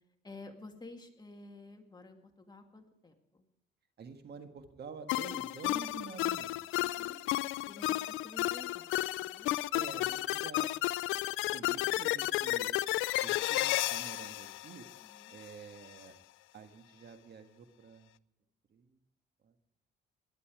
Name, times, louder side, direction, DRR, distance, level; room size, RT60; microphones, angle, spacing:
voice 1, 0.2-3.4 6.8-7.2 7.7-9.6 15.0-15.4, left 3 dB, 20° left, 4 dB, 2.2 m, -52 dB
voice 2, 4.0-6.8 9.7-10.7 11.5-12.7 13.2-14.9 15.3-16.2 16.5-18.1 18.7-19.0 19.4-19.5, right 6 dB, 55° right, 7 dB, 1.6 m, -49 dB
sound 1, 5.1-15.5, left 16 dB, 90° left, 0.4 m, -33 dB
18.0 x 11.5 x 4.9 m, 0.88 s
cardioid pair, 90°, 20 cm